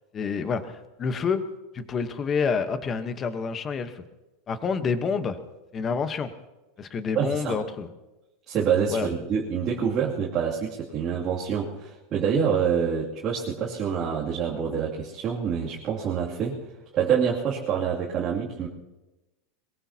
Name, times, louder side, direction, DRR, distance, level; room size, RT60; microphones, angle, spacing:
voice 1, 0.1-1.4 1.7-4.0 4.5-5.4 5.7-6.3 6.8-7.9 8.9-9.1, left 5 dB, 20° left, 10 dB, 1.1 m, -28 dB
voice 2, 7.1-7.6 8.5-16.6 16.9-18.7, right 7 dB, 30° right, -6 dB, 2.6 m, -26 dB
22.5 x 22.0 x 2.9 m, 1.1 s
supercardioid pair, 160°, 0 cm